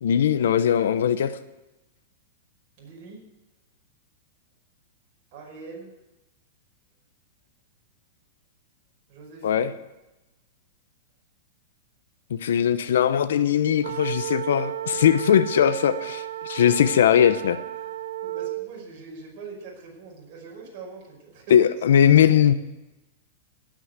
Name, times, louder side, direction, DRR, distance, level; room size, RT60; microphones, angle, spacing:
voice 1, 0.0-1.4 9.4-9.7 12.3-17.6 21.5-22.5, left 9 dB, 80° left, 11 dB, 0.8 m, -20 dB
voice 2, 2.8-3.2 5.3-5.9 9.1-9.7 13.9-14.2 17.8-17.9 18.2-21.6, right 4 dB, 40° right, -3 dB, 5.4 m, -43 dB
sound 1, 13.8-18.7, right 13 dB, 75° right, 0.5 m, -33 dB
18.0 x 6.3 x 8.0 m, 1.0 s
supercardioid pair, 165°, 0 cm